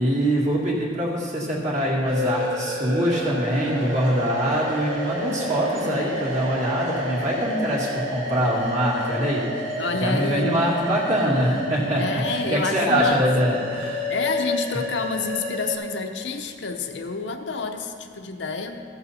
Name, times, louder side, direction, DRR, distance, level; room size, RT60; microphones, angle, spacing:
voice 1, 0.0-9.5 10.0-14.1, equal, 40° right, -4 dB, 2.1 m, -23 dB
sound 1, 2.1-15.8, equal, 90° right, 2.2 m, -30 dB
voice 2, 9.8-10.6 12.0-13.6 14.1-18.8, left 4 dB, 65° left, 5 dB, 0.7 m, -29 dB
15.0 x 6.9 x 4.2 m, 2.2 s
head